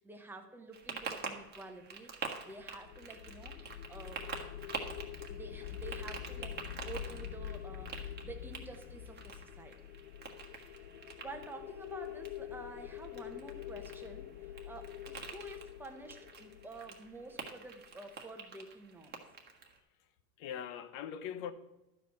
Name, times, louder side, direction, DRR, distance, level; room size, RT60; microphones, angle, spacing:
voice 1, 0.0-4.3 5.3-9.9 10.6-14.3 14.7-19.2, right 2 dB, 5° right, 0.9 m, -50 dB
sound 1, 0.7-19.8, right 5 dB, 20° right, 1.3 m, -47 dB
sound 2, 2.5-17.7, left 11 dB, 70° left, 0.7 m, -46 dB
voice 2, 19.8-21.5, left 9 dB, 45° left, 0.9 m, -43 dB
12.0 x 5.1 x 6.3 m
supercardioid pair, 140°, 46 cm